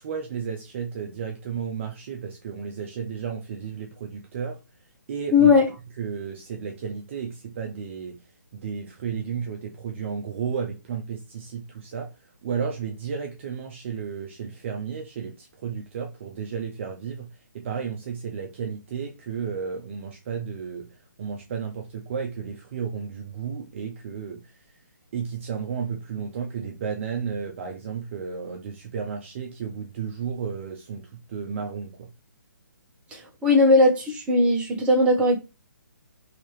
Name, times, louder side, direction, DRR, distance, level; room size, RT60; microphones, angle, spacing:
voice 1, 0.0-4.6 5.1-5.5 6.0-8.2 8.5-12.2 12.4-24.6 25.1-32.1, right 6 dB, 40° right, 0.5 m, -33 dB
voice 2, 5.3-5.7 33.1-35.4, left 3 dB, 10° right, 0.9 m, -18 dB
3.2 x 2.8 x 3.1 m
hypercardioid pair, 150°, 10 cm